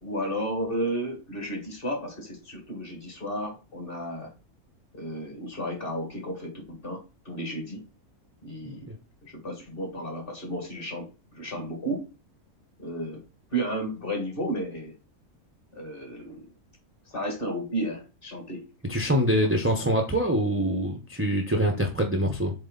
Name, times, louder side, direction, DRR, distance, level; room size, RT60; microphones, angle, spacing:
voice 1, 0.0-4.3 4.9-7.8 8.4-8.9 9.2-12.1 12.8-13.2 13.5-14.9 15.7-16.5 17.1-18.6 19.4-19.9, right 1 dB, 35° left, 2 dB, 2.1 m, -33 dB
voice 2, 8.6-9.0 18.9-22.5, equal, 10° right, 1 dB, 0.7 m, -25 dB
7.7 x 3.2 x 3.9 m, 0.31 s
omnidirectional pair, 1.6 m